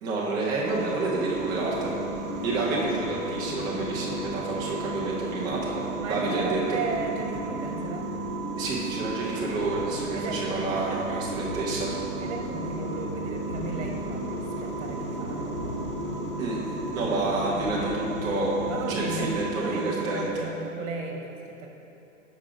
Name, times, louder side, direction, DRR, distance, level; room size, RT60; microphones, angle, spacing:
voice 1, 0.0-2.0 2.4-6.8 8.6-11.9 16.4-16.6 16.9-18.6 18.9-20.5, right 2 dB, 10° right, -5 dB, 0.3 m, -29 dB
sound 1, 0.6-20.3, right 3 dB, 35° right, 1.1 m, -34 dB
sound 2, 1.2-15.5, left 2 dB, 40° left, 1.4 m, -46 dB
voice 2, 2.5-3.0 6.0-8.1 10.1-11.2 12.2-14.3 14.6-15.5 18.7-21.7, right 4 dB, 60° right, 2 dB, 1.3 m, -35 dB
sound 3, 9.5-19.5, left 2 dB, 80° left, 1.8 m, -40 dB
7.2 x 5.0 x 4.8 m, 2.9 s
hypercardioid pair, 140°, 40 cm